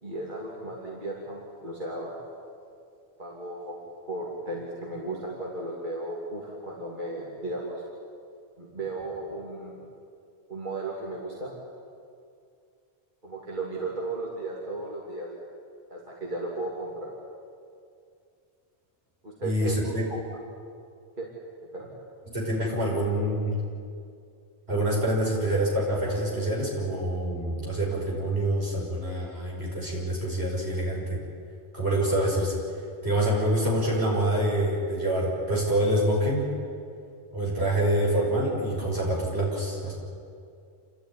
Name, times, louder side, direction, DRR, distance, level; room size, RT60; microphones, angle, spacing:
voice 1, 0.0-2.2 3.2-3.8 4.1-7.8 8.6-9.7 10.5-11.5 13.2-15.3 15.9-17.1 19.2-20.2 21.2-21.3 21.7-21.9, right 2 dB, 45° right, -4 dB, 3.0 m, -35 dB
voice 2, 19.4-20.1 22.3-23.6 24.7-31.2 31.7-32.6 33.0-36.4 37.3-39.9, right 1 dB, 70° right, -4 dB, 6.3 m, -26 dB
28.0 x 13.0 x 10.0 m, 2.4 s
omnidirectional pair, 1.1 m